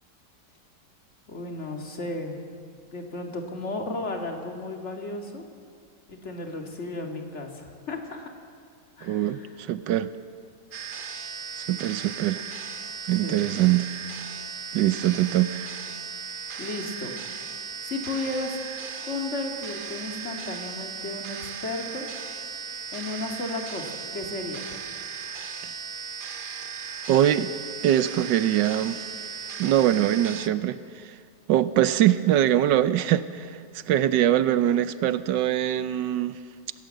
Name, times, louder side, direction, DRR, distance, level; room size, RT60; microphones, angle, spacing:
voice 1, 1.3-2.4 2.9-5.4 6.1-8.3 9.0-9.5 13.1-13.5 16.3-17.1 17.8-18.6 19.0-22.1 22.9-24.6, left 2 dB, 40° left, 3 dB, 2.5 m, -34 dB
voice 2, 9.0-10.1 11.6-12.4 13.1-13.9 14.7-15.7 27.1-27.5 27.8-29.2 29.6-30.8 31.0-31.1 31.5-33.5 33.9-36.4, right 12 dB, 85° right, 14 dB, 1.4 m, -23 dB
sound 1, 10.7-30.5, right 6 dB, 45° right, 0.7 m, -37 dB
26.5 x 15.5 x 7.7 m, 2.3 s
omnidirectional pair, 1.9 m